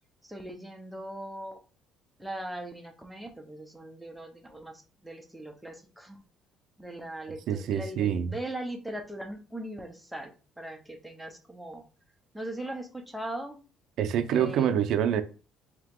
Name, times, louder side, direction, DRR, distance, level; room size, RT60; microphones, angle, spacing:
voice 1, 0.2-1.6 2.2-6.2 6.8-10.3 10.6-11.8 12.3-13.6 14.3-14.7, right 1 dB, ahead, 0.8 m, -39 dB
voice 2, 7.5-8.3 14.0-15.2, right 9 dB, 65° right, 0.5 m, -26 dB
3.6 x 2.9 x 3.6 m
cardioid pair, 130°, 0 cm